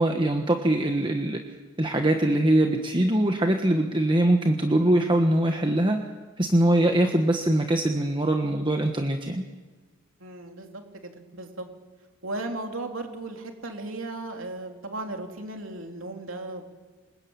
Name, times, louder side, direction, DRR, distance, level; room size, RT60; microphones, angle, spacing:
voice 1, 0.0-1.4 1.8-6.0 6.4-9.4, right 1 dB, 20° right, 4 dB, 1.4 m, -22 dB
voice 2, 10.2-11.7 12.2-16.7, right 2 dB, 60° right, 3 dB, 3.4 m, -36 dB
27.5 x 21.5 x 8.9 m, 1.3 s
head